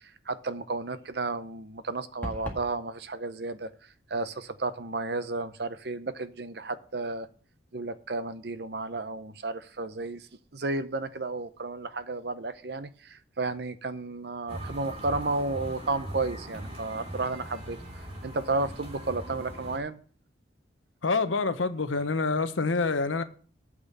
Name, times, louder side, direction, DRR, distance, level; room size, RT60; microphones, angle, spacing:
voice 1, 0.3-3.7 4.1-7.3 7.7-10.2 10.5-17.8 18.2-20.0, right 3 dB, 55° right, 0.7 m, -32 dB
sound 1, 2.2-2.7, equal, 10° left, 1.9 m, -36 dB
sound 2, 14.5-19.8, right 1 dB, 35° right, 3.4 m, -40 dB
voice 2, 21.0-23.2, left 4 dB, 90° left, 0.9 m, -27 dB
8.7 x 6.2 x 6.8 m
head